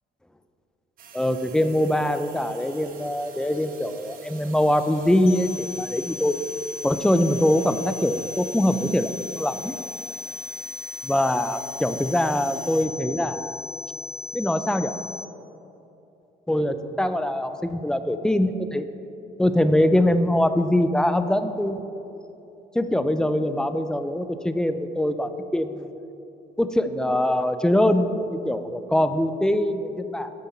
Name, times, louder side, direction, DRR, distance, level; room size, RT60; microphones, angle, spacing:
sound 1, 1.0-12.9, right 6 dB, 55° right, 1.0 m, -47 dB
voice 1, 1.1-6.3 6.8-9.7 11.0-13.6 14.3-14.9 16.5-18.9 19.4-21.8 22.7-25.9 26.6-30.3, left 1 dB, 5° left, 10 dB, 0.4 m, -23 dB
sound 2, 5.3-15.3, left 6 dB, 70° left, 0.5 m, -37 dB
9.8 x 7.9 x 4.3 m, 2.8 s
cardioid pair, 110°, 17 cm